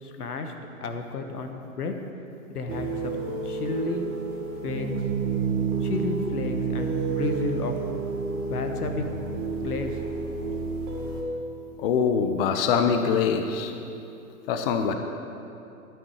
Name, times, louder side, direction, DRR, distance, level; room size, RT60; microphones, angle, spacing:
voice 1, 0.0-0.5 0.8-1.9 2.5-4.1 4.6-4.9 5.8-7.7 8.3-9.0 9.6-10.0, left 4 dB, 80° left, 6 dB, 1.3 m, -32 dB
sound 1, 2.7-11.2, right 5 dB, 25° right, 1.7 m, -30 dB
voice 2, 11.8-13.7 14.5-15.0, left 6 dB, 40° left, 6 dB, 0.8 m, -23 dB
12.0 x 9.0 x 4.9 m, 2.8 s
hypercardioid pair, 130°, 45 cm